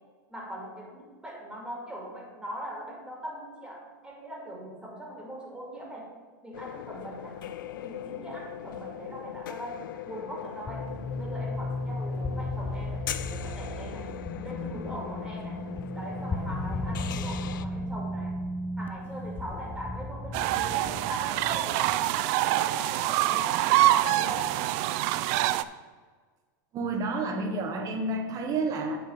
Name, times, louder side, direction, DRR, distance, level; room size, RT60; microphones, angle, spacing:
voice 1, 0.3-6.1 6.4-7.4 7.8-14.1 14.4-15.7 15.9-18.4 18.8-24.5, right 1 dB, 10° right, -2 dB, 2.3 m, -41 dB
sound 1, 6.5-17.7, left 11 dB, 80° left, 0.5 m, -40 dB
sound 2, 10.7-22.0, left 1 dB, 20° left, 0.5 m, -35 dB
sound 3, 20.3-25.6, right 15 dB, 55° right, 0.4 m, -25 dB
voice 2, 26.7-29.0, right 3 dB, 35° right, 4 dB, 1.5 m, -30 dB
7.9 x 4.5 x 7.1 m, 1.5 s
hypercardioid pair, 120°, 11 cm